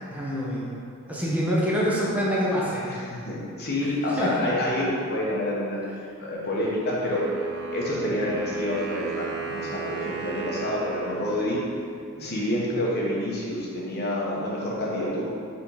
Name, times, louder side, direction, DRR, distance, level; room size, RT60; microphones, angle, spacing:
voice 1, 0.1-0.7 1.1-2.9 3.8-4.3, equal, 5° right, -7 dB, 0.9 m, -26 dB
voice 2, 2.9-5.8 6.2-7.2 7.7-11.6 12.1-15.2, left 1 dB, 45° left, -4 dB, 1.1 m, -28 dB
Wind instrument woodwind instrument, 7.1-12.1, right 5 dB, 50° right, 0.6 m, -34 dB
5.7 x 3.8 x 4.7 m, 2.4 s
head